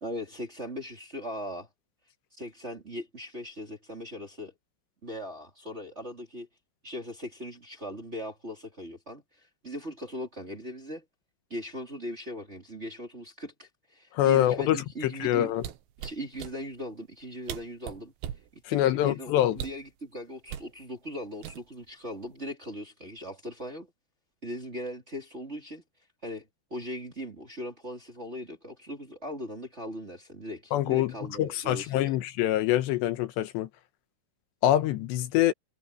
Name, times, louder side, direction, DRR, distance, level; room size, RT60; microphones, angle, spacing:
voice 1, 0.0-1.7 2.4-4.5 5.0-6.5 6.8-11.0 11.5-15.5 16.0-18.1 18.7-23.9 24.4-25.8 26.2-32.2, equal, 20° right, 2.6 m, -39 dB
voice 2, 14.1-14.8 15.2-15.6 18.7-19.6 30.7-31.1 31.4-33.7 34.6-35.5, left 13 dB, 80° left, 3.0 m, -25 dB
sound 1, 15.6-16.6 17.2-17.3 17.5-18.5 19.5-19.9 20.5-20.7 21.4-21.9 22.2-22.5, right 10 dB, 75° right, 3.5 m, -38 dB
omnidirectional pair, 5.2 m